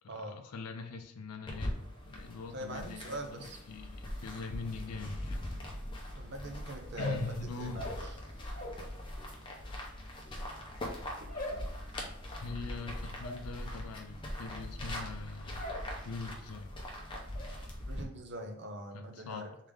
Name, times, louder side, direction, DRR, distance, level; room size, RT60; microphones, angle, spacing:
voice 1, 0.0-1.8 2.1-5.4 7.0-8.0 12.4-15.7 16.0-16.7 18.9-19.5, left 4 dB, 85° left, 6 dB, 0.4 m, -42 dB
sound 1, 1.5-18.0, left 1 dB, 20° left, 0.6 m, -42 dB
voice 2, 2.5-3.6 6.2-8.1 17.9-19.5, right 1 dB, 50° right, 4 dB, 0.7 m, -42 dB
sound 2, 6.8-8.9 9.1-15.9 16.2-16.7 17.0-17.5, left 1 dB, 35° left, 1.3 m, -44 dB
3.6 x 3.5 x 3.6 m, 0.72 s
head